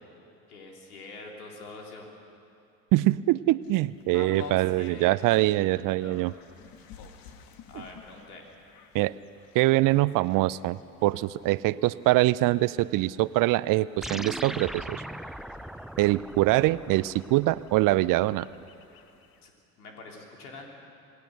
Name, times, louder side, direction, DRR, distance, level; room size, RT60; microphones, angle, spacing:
voice 1, 0.5-2.1 4.3-6.3 7.7-8.5 19.4-19.5 19.8-20.7, left 3 dB, 80° left, 0 dB, 3.8 m, -46 dB
voice 2, 2.9-6.3 8.9-9.1 9.5-15.0 16.0-18.5, right 18 dB, 50° right, 18 dB, 0.6 m, -24 dB
sound 1, 3.6-19.5, left 6 dB, 50° left, 2.0 m, -51 dB
sound 2, 14.0-18.7, equal, ahead, 0.5 m, -40 dB
28.0 x 19.5 x 6.6 m, 2.6 s
hypercardioid pair, 65°, 44 cm